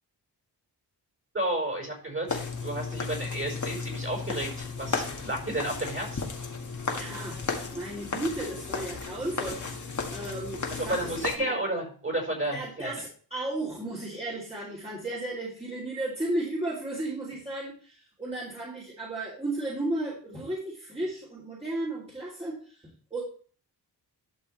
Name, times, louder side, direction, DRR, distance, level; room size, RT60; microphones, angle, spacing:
voice 1, 1.3-6.3 10.8-12.9, right 1 dB, 30° right, 0 dB, 4.9 m, -32 dB
sound 1, 2.3-11.4, left 4 dB, 45° left, 1.8 m, -34 dB
voice 2, 6.9-7.4 7.7-11.1 11.4-11.6 12.5-23.2, right 1 dB, 15° right, -6 dB, 3.1 m, -34 dB
12.0 x 6.1 x 3.3 m, 0.43 s
cardioid pair, 80°, 41 cm